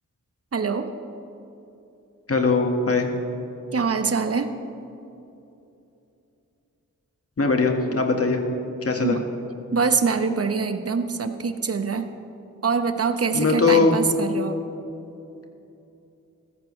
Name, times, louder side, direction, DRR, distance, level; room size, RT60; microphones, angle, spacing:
voice 1, 0.5-0.9 3.7-4.5 9.0-9.2 9.7-12.1 12.6-14.6, right 5 dB, 45° right, 8 dB, 1.0 m, -24 dB
voice 2, 2.3-3.1 7.4-8.4 8.8-9.2 13.3-14.0, left 4 dB, 45° left, 4 dB, 1.7 m, -20 dB
15.5 x 13.5 x 3.3 m, 2.8 s
cardioid pair, 40°, 33 cm